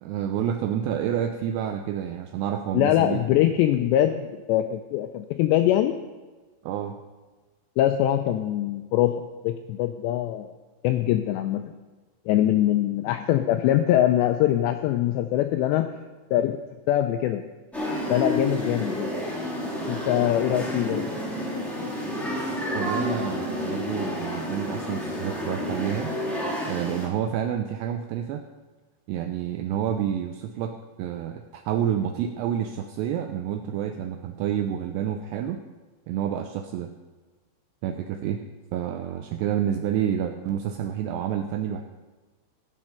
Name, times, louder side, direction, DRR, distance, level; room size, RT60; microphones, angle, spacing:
voice 1, 0.0-3.4 6.6-7.0 22.7-26.1 26.7-28.4 29.1-35.6 36.1-36.9 37.8-38.4 38.7-41.8, right 9 dB, 85° right, 6 dB, 2.4 m, -29 dB
voice 2, 2.7-6.0 7.8-9.1 9.4-10.5 10.8-11.6 12.3-15.9 16.3-16.6 16.9-17.4 18.1-19.1 19.9-21.1, left 12 dB, 85° left, 8 dB, 2.5 m, -23 dB
sound 1, 17.7-27.1, left 1 dB, ahead, 0.4 m, -30 dB
15.0 x 7.6 x 5.8 m, 1.3 s
omnidirectional pair, 5.5 m